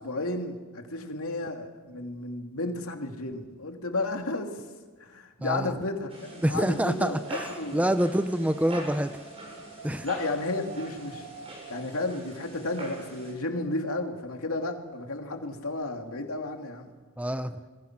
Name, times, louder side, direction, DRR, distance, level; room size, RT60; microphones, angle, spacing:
voice 1, 0.0-4.5 5.0-7.2 7.5-7.9 10.0-11.3 11.7-16.9, left 2 dB, 70° left, 3 dB, 2.7 m, -33 dB
voice 2, 5.4-5.8 6.4-7.5 7.7-9.1 9.8-10.1 17.2-17.6, equal, 5° right, 10 dB, 0.7 m, -26 dB
sound 1, 6.1-13.3, right 1 dB, 25° right, 6.6 m, -43 dB
Wind, 6.7-12.6, right 4 dB, 90° right, 7.8 m, -48 dB
27.0 x 21.5 x 6.0 m, 1.4 s
head